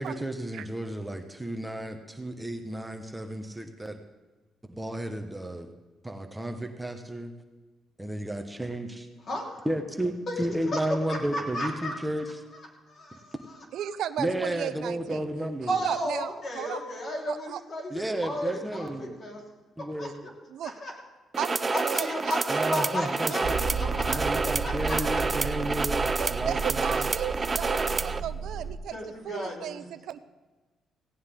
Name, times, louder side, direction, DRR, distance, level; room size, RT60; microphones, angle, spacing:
voice 1, 0.0-4.0 4.8-5.7 6.0-7.3 8.0-9.1 9.6-12.3 14.2-15.8 17.9-19.1 19.8-20.2 22.5-23.5 24.0-27.0, right 1 dB, 10° right, 4 dB, 1.5 m, -32 dB
voice 2, 9.3-9.7 10.3-10.8 11.1-12.0 12.5-13.5 15.7-19.4 19.8-20.3 20.6-20.9 21.7-25.0 28.9-29.8, left 1 dB, 45° left, -1 dB, 4.5 m, -35 dB
voice 3, 13.7-15.2 15.6-16.8 17.3-17.6 20.5-20.7 21.4-21.5 21.8-22.7 26.2-29.0 29.2-30.2, right 10 dB, 75° right, 13 dB, 0.7 m, -34 dB
sound 1, 21.3-28.2, right 3 dB, 30° right, 0.7 m, -29 dB
Motor vehicle (road), 23.4-28.8, right 5 dB, 55° right, 1.8 m, -33 dB
17.0 x 17.0 x 3.9 m, 1.3 s
cardioid pair, 90°, 0 cm